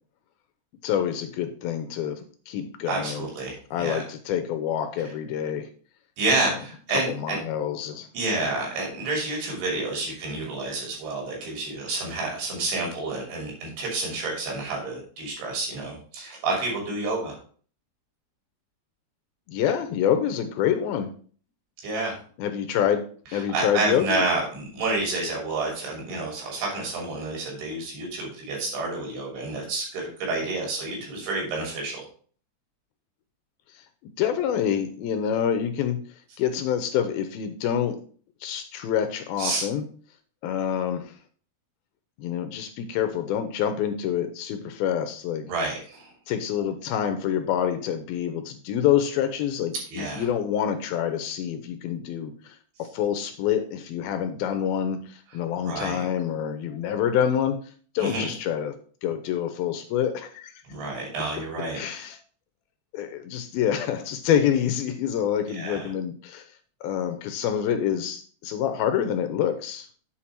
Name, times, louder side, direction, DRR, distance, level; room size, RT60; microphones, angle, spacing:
voice 1, 0.8-3.3 3.7-5.7 6.3-6.5 6.9-8.1 19.5-21.1 22.4-23.1 23.3-24.2 33.8-38.0 38.4-39.8 40.4-41.1 42.2-45.5 46.3-57.6 57.9-58.8 59.0-60.5 61.7-62.2 62.9-66.5 66.8-69.9, left 9 dB, 80° left, 7 dB, 2.3 m, -27 dB
voice 2, 2.9-4.0 6.2-7.4 8.1-17.4 21.8-22.1 23.3-32.0 39.4-39.6 45.4-46.1 49.9-50.3 55.6-56.1 58.0-58.3 60.7-62.0 65.5-65.8, right 3 dB, 80° right, -1 dB, 5.0 m, -29 dB
8.6 x 4.6 x 4.4 m, 0.43 s
omnidirectional pair, 4.6 m